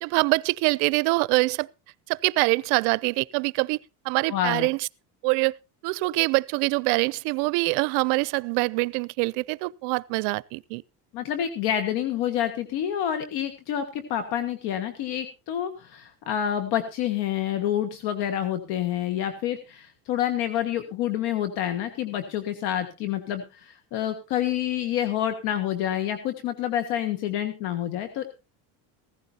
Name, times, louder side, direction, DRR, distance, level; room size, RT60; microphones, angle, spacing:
voice 1, 0.0-1.7 2.1-3.8 4.0-4.9 5.2-5.6 5.8-10.8, right 25 dB, 75° right, 0.5 m, -24 dB
voice 2, 4.3-4.7 11.1-28.2, left 10 dB, 70° left, 1.7 m, -28 dB
16.5 x 14.5 x 2.8 m
cardioid pair, 120°, 40 cm